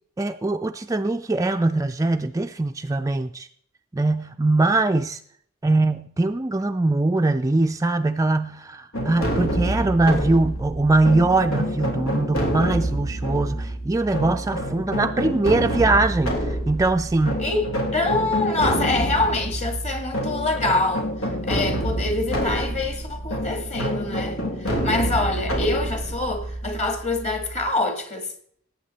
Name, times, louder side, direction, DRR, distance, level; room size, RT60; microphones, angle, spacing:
voice 1, 0.2-3.5 3.9-5.2 5.6-17.4, right 2 dB, 15° right, 0.4 m, -22 dB
sound 1, 8.9-27.6, equal, 90° left, 3.0 m, -27 dB
voice 2, 17.4-28.3, left 2 dB, 35° left, 1.9 m, -25 dB
17.5 x 8.5 x 4.2 m
head